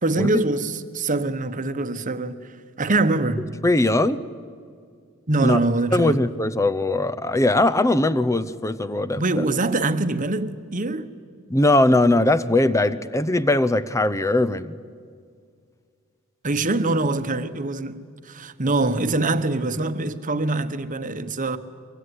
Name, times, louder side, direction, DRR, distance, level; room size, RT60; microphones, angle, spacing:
voice 1, 0.0-2.5 2.8-3.5 5.3-6.2 9.2-11.1 16.4-21.6, right 2 dB, 40° right, 1.1 m, -24 dB
voice 2, 3.6-4.2 5.4-5.6 5.9-9.4 11.5-14.8, left 2 dB, 15° left, 0.7 m, -20 dB
24.0 x 23.5 x 9.8 m
head